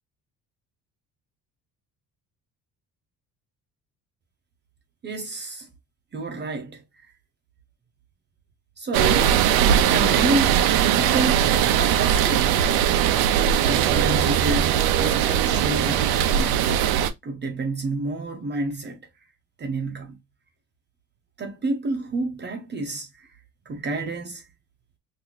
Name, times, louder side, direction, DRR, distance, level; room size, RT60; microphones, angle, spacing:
voice 1, 5.0-5.7 6.1-6.8 8.8-9.3 9.9-11.5 11.8-12.6 13.6-16.8 17.2-19.0 19.6-20.2 21.4-23.3 23.7-24.4, right 2 dB, 30° right, 0.7 m, -29 dB
sound 1, 8.9-17.1, right 9 dB, 85° right, 0.6 m, -20 dB
3.0 x 2.7 x 3.9 m
cardioid pair, 150°, 36 cm